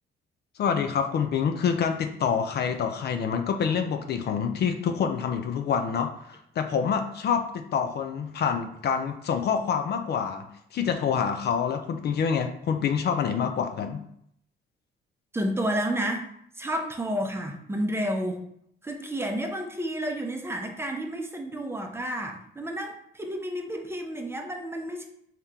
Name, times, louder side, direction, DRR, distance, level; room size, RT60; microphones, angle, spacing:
voice 1, 0.6-14.0, left 7 dB, 55° left, 6 dB, 0.4 m, -27 dB
voice 2, 15.3-16.3 16.6-18.4 18.8-25.0, equal, 10° right, 3 dB, 0.6 m, -31 dB
3.5 x 2.9 x 3.4 m, 0.71 s
cardioid pair, 90°, 20 cm